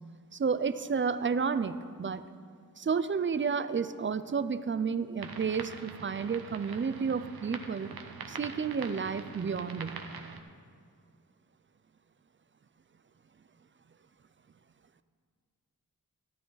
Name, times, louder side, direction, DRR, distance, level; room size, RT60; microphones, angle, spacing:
voice 1, 0.3-2.2 2.8-7.9 8.3-10.0, right 5 dB, 35° right, 12 dB, 0.5 m, -31 dB
sound 1, 5.2-10.4, right 5 dB, 90° right, 0.8 m, -44 dB
13.5 x 12.0 x 4.0 m, 2.1 s
wide cardioid pair, 65°, 36 cm